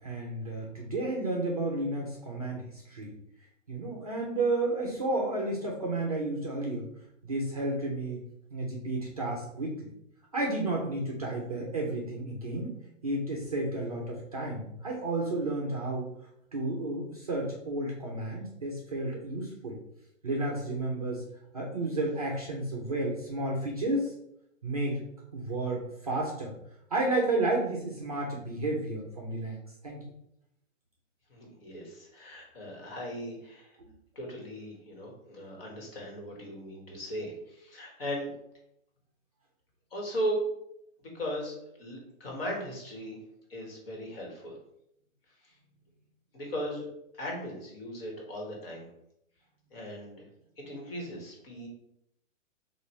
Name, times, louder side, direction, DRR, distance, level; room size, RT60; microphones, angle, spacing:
voice 1, 0.0-3.1 3.7-6.8 7.2-8.2 8.5-9.9 10.3-12.8 13.0-16.1 16.5-19.8 20.2-21.2 21.5-24.1 24.6-25.0 25.3-26.5 26.9-29.6 29.8-30.0 33.8-33.9, right 2 dB, 30° right, -1 dB, 0.5 m, -32 dB
voice 2, 31.3-33.8 34.1-38.3 39.9-40.5 41.0-43.2 43.5-44.6 45.4-45.5 46.3-46.8 47.1-48.9 49.7-50.3 50.6-51.7, equal, 45° left, -1 dB, 1.5 m, -37 dB
6.6 x 2.5 x 3.1 m, 0.77 s
hypercardioid pair, 180°, 39 cm